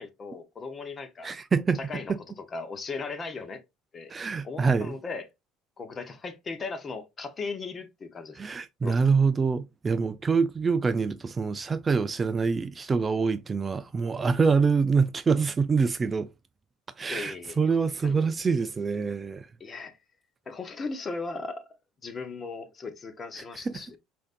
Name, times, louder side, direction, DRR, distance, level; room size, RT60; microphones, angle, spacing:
voice 1, 0.0-1.3 1.9-2.2 2.5-3.6 3.9-4.1 4.4-5.3 5.8-8.4 8.8-9.0 17.1-17.6 18.0-18.2 19.6-20.0 20.5-21.6 22.0-24.0, left 4 dB, 30° left, 0.8 m, -37 dB
voice 2, 1.2-1.8 2.1-2.2 4.1-5.0 8.4-16.3 17.0-19.5 23.5-23.8, right 5 dB, 25° right, 0.3 m, -25 dB
5.0 x 2.6 x 2.5 m
supercardioid pair, 95°, 0 cm